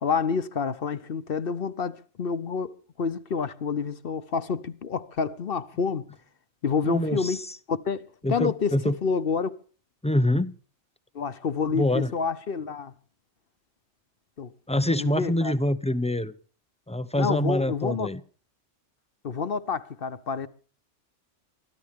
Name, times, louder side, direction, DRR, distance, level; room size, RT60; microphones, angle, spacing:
voice 1, 0.0-6.1 6.6-7.4 7.7-9.5 11.1-12.9 14.4-14.5 14.9-15.5 17.2-18.1 19.2-20.5, left 5 dB, 55° left, 1.0 m, -28 dB
voice 2, 6.8-7.4 8.2-9.0 10.0-10.5 11.7-12.1 14.7-16.3 16.9-18.2, left 1 dB, 10° left, 0.3 m, -25 dB
24.0 x 14.0 x 3.6 m
omnidirectional pair, 1.2 m